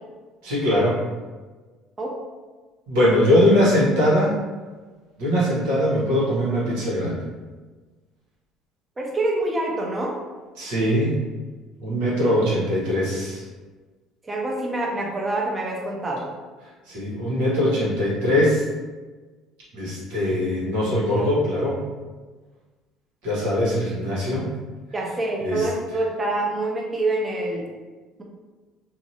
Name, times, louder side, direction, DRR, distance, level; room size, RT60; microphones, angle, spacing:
voice 1, 0.4-1.0 2.9-4.4 5.2-7.2 10.6-11.1 11.8-13.4 16.9-18.6 19.7-21.8 23.2-24.5 25.4-25.7, left 1 dB, 85° right, -8 dB, 1.2 m, -21 dB
voice 2, 9.0-10.1 14.2-16.2 24.9-27.7, right 2 dB, 25° right, -2 dB, 0.7 m, -26 dB
2.8 x 2.5 x 2.6 m, 1.3 s
supercardioid pair, 85°, 0 cm